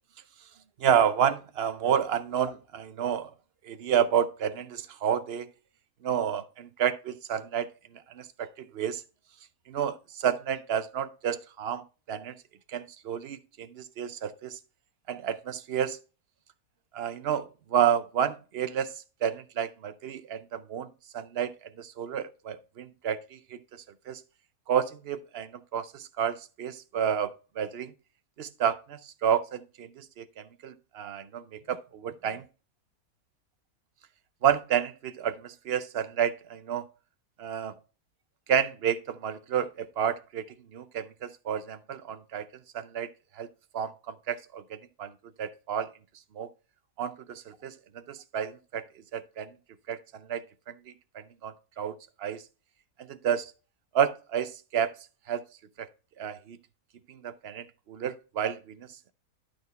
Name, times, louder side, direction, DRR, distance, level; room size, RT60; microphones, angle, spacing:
voice 1, 0.8-3.3 3.7-5.5 6.0-7.7 8.2-9.0 9.7-12.4 12.7-14.6 15.1-16.0 16.9-18.9 19.2-24.2 24.7-27.9 28.4-32.4 34.4-36.9 37.4-37.7 38.5-40.4 40.7-42.5 42.7-43.1 43.4-43.5 43.7-45.1 45.4-45.9 46.4-46.5 47.0-48.8 49.1-49.5 49.9-50.0 50.3-50.7 51.1-52.4 53.1-53.5 53.9-54.9 55.3-55.4 55.8-55.9 56.2-56.6 57.1-58.8, right 8 dB, 60° right, 0.6 m, -30 dB
11.5 x 4.3 x 4.0 m
omnidirectional pair, 1.6 m